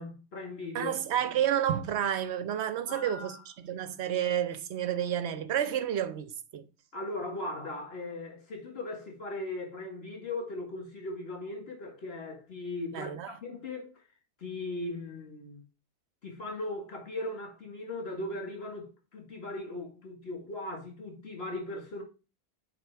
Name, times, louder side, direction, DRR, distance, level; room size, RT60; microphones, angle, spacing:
voice 1, 0.0-1.0 2.9-3.4 6.9-13.9 14.4-15.6 16.2-22.0, left 2 dB, 70° left, 2.0 m, -38 dB
voice 2, 0.7-6.6 12.9-13.3, right 10 dB, 85° right, 1.0 m, -30 dB
6.6 x 3.5 x 4.6 m
omnidirectional pair, 1.1 m